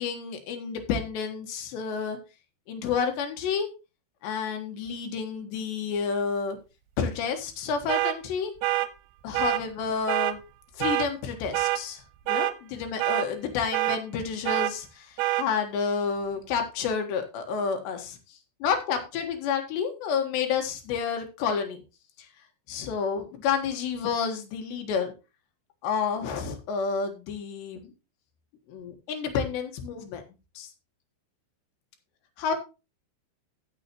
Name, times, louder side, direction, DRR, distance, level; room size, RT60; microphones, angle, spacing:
voice 1, 0.0-2.2 2.7-3.7 4.2-6.6 7.0-8.5 9.2-10.4 10.7-12.0 12.3-21.8 22.7-25.1 25.8-27.9 28.7-30.2 30.6-30.7 32.4-32.6, left 6 dB, 70° left, 4 dB, 3.6 m, -30 dB
sound 1, 7.9-8.2 8.6-8.9 9.3-9.6 10.1-10.3 10.8-11.1 11.5-11.8 12.3-12.5 13.0-13.3 13.7-14.0 14.5-14.7 15.2-15.5, right 17 dB, 85° right, 3.0 m, -25 dB
15.0 x 7.1 x 3.0 m, 0.29 s
omnidirectional pair, 5.4 m